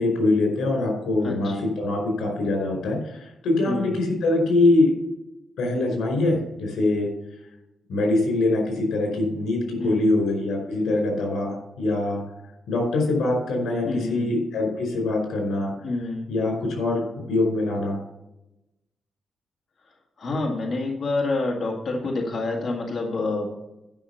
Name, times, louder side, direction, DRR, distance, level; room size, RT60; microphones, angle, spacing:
voice 1, 0.0-4.9 5.6-7.1 7.9-12.2 12.7-15.7 16.3-18.0, left 2 dB, 85° left, 2 dB, 4.8 m, -23 dB
voice 2, 1.2-1.6 3.6-4.0 9.8-10.2 13.8-14.3 15.8-16.2 19.8-23.5, left 2 dB, 45° left, 0 dB, 2.0 m, -28 dB
11.5 x 5.8 x 6.9 m, 0.93 s
wide cardioid pair, 145°, 0 cm